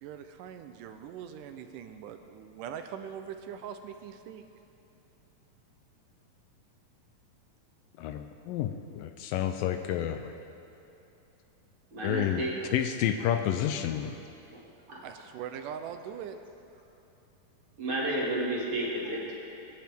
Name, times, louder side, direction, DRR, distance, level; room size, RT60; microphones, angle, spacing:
voice 1, 0.0-4.4 15.0-16.4, right 8 dB, 80° right, 7 dB, 2.1 m, -41 dB
voice 2, 8.0-10.2 12.0-12.5 12.7-14.1, left 10 dB, 85° left, 7 dB, 2.3 m, -30 dB
voice 3, 11.9-12.6 14.5-14.6 14.9-15.0 17.8-19.5, right 1 dB, 40° right, -5 dB, 2.9 m, -32 dB
25.0 x 10.5 x 3.6 m, 2.9 s
omnidirectional pair, 4.0 m